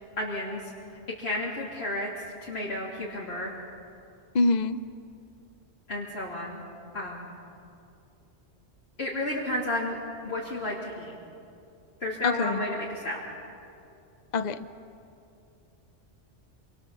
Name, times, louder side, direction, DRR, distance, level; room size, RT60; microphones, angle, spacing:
voice 1, 0.2-0.7 1.2-3.5 5.9-6.6 6.9-7.3 9.0-10.0 10.2-11.1 12.0-13.2, left 1 dB, 60° left, -5 dB, 3.1 m, -32 dB
voice 2, 4.3-4.8 12.2-12.6 14.3-14.7, left 3 dB, 40° left, 12 dB, 0.8 m, -25 dB
27.0 x 25.0 x 7.1 m, 2.6 s
omnidirectional pair, 1.2 m